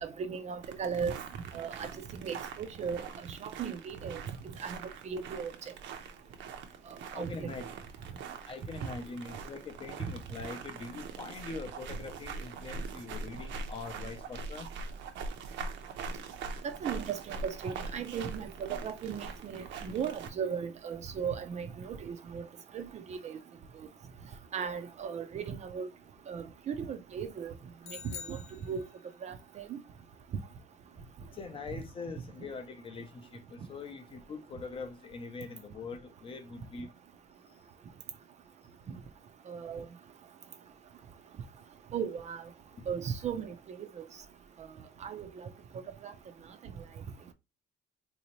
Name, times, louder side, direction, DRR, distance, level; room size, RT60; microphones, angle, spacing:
voice 1, 0.0-1.1 1.5-3.0 3.3-4.2 4.6-4.8 5.0-5.5 7.2-7.5 16.8-22.5 22.7-23.4 24.5-25.9 26.3-27.5 28.0-28.4 28.7-28.8 29.2-29.3 29.7-29.8 39.5-39.9 41.9-42.4 42.9-44.0 45.0-45.5 46.0-46.1, right 7 dB, 35° right, 0.4 m, -37 dB
sound 1, 0.6-20.3, right 4 dB, 80° right, 0.7 m, -43 dB
voice 2, 7.1-7.7 8.5-14.7 31.4-36.9, left 4 dB, 30° left, 0.5 m, -43 dB
sound 2, 27.8-29.3, left 7 dB, 85° left, 0.7 m, -46 dB
4.0 x 2.7 x 2.9 m
cardioid pair, 180°, 19 cm